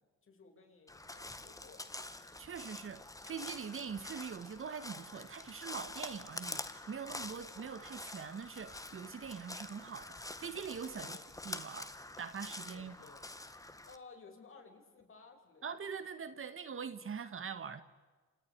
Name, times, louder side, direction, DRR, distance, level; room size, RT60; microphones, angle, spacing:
voice 1, 0.0-2.0 10.9-11.3 12.7-13.3 13.9-15.7, left 4 dB, 45° left, 5.6 m, -57 dB
Crow, 0.9-14.0, left 2 dB, 10° left, 1.7 m, -47 dB
voice 2, 2.4-11.1 11.4-11.9 12.2-12.9 15.6-17.8, right 6 dB, 45° right, 1.7 m, -43 dB
30.0 x 27.0 x 4.8 m
cardioid pair, 90°, 30 cm